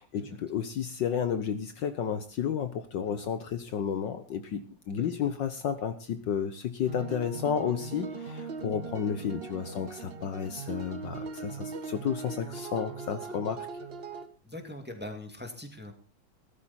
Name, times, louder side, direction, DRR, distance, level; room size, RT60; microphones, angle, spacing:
voice 1, 0.0-13.7, left 8 dB, 65° left, 10 dB, 1.5 m, -32 dB
voice 2, 5.0-5.3 14.4-15.9, left 1 dB, 5° right, 5 dB, 2.0 m, -42 dB
sound 1, 6.9-14.3, right 4 dB, 40° right, 1.0 m, -40 dB
16.0 x 13.0 x 4.2 m, 0.36 s
omnidirectional pair, 2.3 m